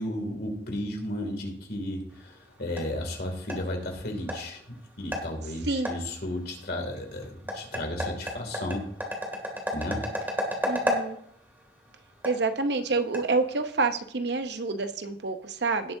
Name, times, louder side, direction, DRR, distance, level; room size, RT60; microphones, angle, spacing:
voice 1, 0.0-4.6 5.0-8.8 9.7-10.0, left 1 dB, 60° left, 3 dB, 2.6 m, -33 dB
sound 1, 2.1-13.9, equal, 10° right, 2.5 m, -35 dB
voice 2, 10.6-11.2 12.2-15.9, right 3 dB, 65° right, 8 dB, 0.9 m, -28 dB
18.0 x 7.4 x 2.7 m, 0.66 s
head